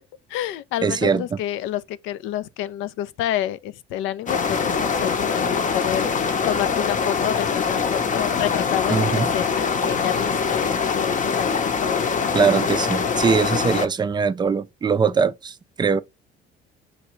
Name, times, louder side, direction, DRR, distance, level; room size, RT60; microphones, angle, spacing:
voice 1, 0.3-12.3, left 12 dB, 75° left, 0.5 m, -29 dB
voice 2, 0.8-1.2 8.9-9.3 12.3-16.0, right 5 dB, 20° right, 0.4 m, -21 dB
sound 1, 4.3-13.9, left 5 dB, 40° left, 0.7 m, -23 dB
5.9 x 2.3 x 3.1 m
supercardioid pair, 80°, 20 cm